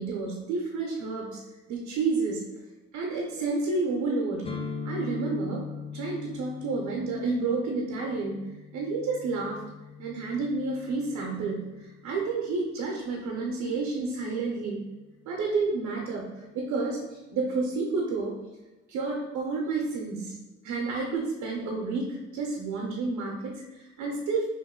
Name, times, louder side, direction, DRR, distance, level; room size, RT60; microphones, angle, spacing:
voice 1, 0.0-1.4 1.7-2.5 2.9-4.5 4.8-5.6 5.9-9.6 10.0-14.8 15.3-18.4 18.9-20.4 20.6-24.5, right 3 dB, 85° right, -1 dB, 0.7 m, -30 dB
sound 1, 4.4-12.2, left 5 dB, 20° left, 0.5 m, -41 dB
3.0 x 2.6 x 3.6 m, 1.1 s
cardioid pair, 90°, 30 cm